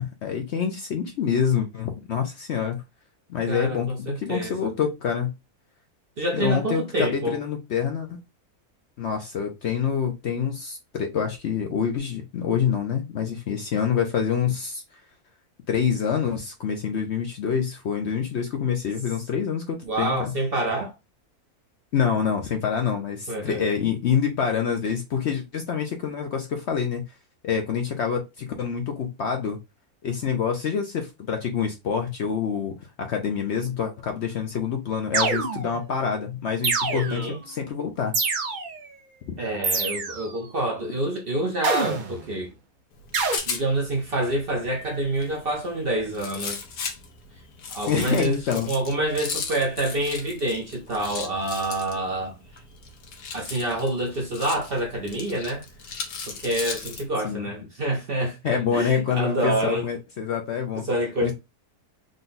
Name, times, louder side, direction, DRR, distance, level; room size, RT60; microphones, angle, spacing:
voice 1, 0.0-2.8 3.3-5.3 6.3-8.2 9.0-15.0 15.7-20.3 21.9-27.0 27.4-29.6 30.0-38.2 47.9-48.7 57.2-57.5 58.4-60.8 61.2-61.3, left 7 dB, 60° left, 0.7 m, -26 dB
voice 2, 3.5-4.7 6.2-7.4 19.8-20.9 23.3-23.7 36.9-37.4 39.4-42.5 43.5-46.6 47.7-48.4 48.7-52.3 53.3-55.6 56.3-59.9 60.8-61.3, right 1 dB, 50° right, 0.7 m, -27 dB
sound 1, 35.1-35.9 36.6-37.4 38.1-38.8 39.6-40.3 41.6-42.3 43.1-43.4, right 4 dB, 80° right, 0.4 m, -26 dB
Rattle, 42.9-57.1, left 5 dB, 80° left, 1.4 m, -37 dB
3.8 x 2.3 x 3.9 m
omnidirectional pair, 1.6 m